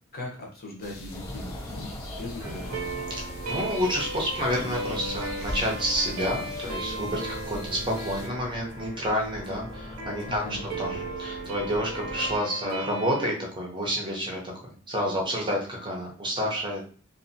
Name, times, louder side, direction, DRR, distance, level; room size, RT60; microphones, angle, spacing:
voice 1, 0.1-2.8 10.3-10.6, left 2 dB, 45° left, -2 dB, 0.9 m, -39 dB
sound 1, 0.8-8.3, left 1 dB, 75° left, 0.7 m, -43 dB
sound 2, 1.1-12.4, left 1 dB, 15° left, 0.4 m, -41 dB
sound 3, 2.4-13.3, right 2 dB, 85° right, 0.7 m, -36 dB
voice 2, 3.1-10.4 10.8-16.9, equal, 20° right, -2 dB, 0.7 m, -29 dB
2.6 x 2.5 x 2.7 m, 0.42 s
head